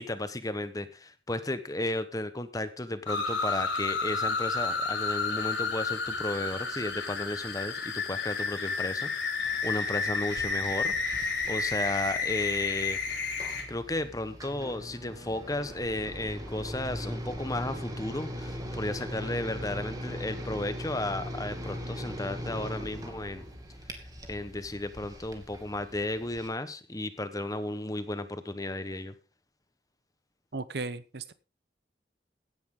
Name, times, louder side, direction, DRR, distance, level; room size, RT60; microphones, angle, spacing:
voice 1, 0.0-13.0 13.7-23.5 23.9-24.0 24.3-29.1, left 2 dB, 20° left, 11 dB, 1.2 m, -34 dB
sound 1, 3.1-13.6, left 4 dB, 80° left, 4.1 m, -31 dB
sound 2, 9.4-26.5, equal, 20° right, 2.5 m, -40 dB
voice 2, 30.5-31.3, right 3 dB, 60° right, 15 dB, 0.9 m, -36 dB
16.5 x 10.5 x 3.9 m, 0.33 s
head